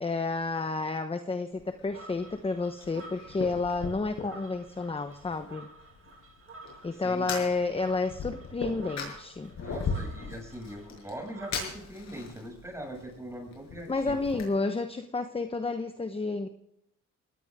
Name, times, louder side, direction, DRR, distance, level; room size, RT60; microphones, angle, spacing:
voice 1, 0.0-5.7 6.8-9.5 13.9-16.5, left 3 dB, 20° left, 8 dB, 1.1 m, -31 dB
Fire, 1.5-14.4, left 4 dB, 65° left, 6.9 m, -40 dB
sound 1, 1.9-11.5, right 3 dB, 45° right, 2.9 m, -51 dB
voice 2, 6.9-7.5 9.6-14.4, right 1 dB, 10° right, 1 dB, 7.1 m, -42 dB
21.0 x 18.5 x 3.7 m, 0.77 s
cardioid pair, 90°, 30 cm